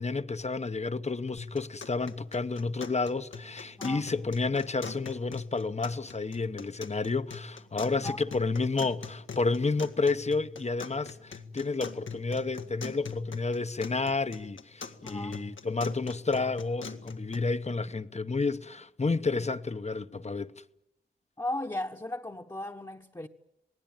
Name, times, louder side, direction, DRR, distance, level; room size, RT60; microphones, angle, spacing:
voice 1, 0.0-20.5, left 3 dB, 35° left, 0.9 m, -30 dB
sound 1, 1.4-17.4, left 4 dB, 85° left, 1.7 m, -43 dB
voice 2, 3.8-4.1 8.0-8.3 15.0-15.4 21.4-23.3, left 1 dB, 20° left, 1.2 m, -36 dB
27.5 x 19.0 x 9.0 m
wide cardioid pair, 80°, 19 cm